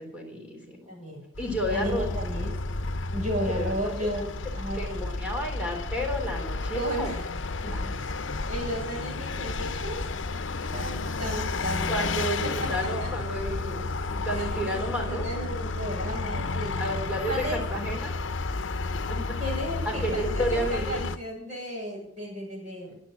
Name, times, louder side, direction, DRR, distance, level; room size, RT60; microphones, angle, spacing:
voice 1, 0.0-0.9 1.4-2.1 3.5-3.7 4.0-4.1 4.8-7.2 7.7-7.9 11.9-15.3 16.8-18.1 19.1-19.2 19.9-21.0, equal, 5° right, 0 dB, 3.4 m, -31 dB
voice 2, 0.9-1.2 1.7-2.5 3.1-5.1 6.7-7.3 7.6-8.1 8.5-10.1 10.7-12.1 12.4-13.1 14.3-16.8 17.3-17.6 19.1-23.0, equal, 40° right, -3 dB, 6.7 m, -34 dB
Vehicle, 1.4-21.2, left 3 dB, 75° left, 0.8 m, -31 dB
10.5 x 10.0 x 8.6 m, 0.72 s
head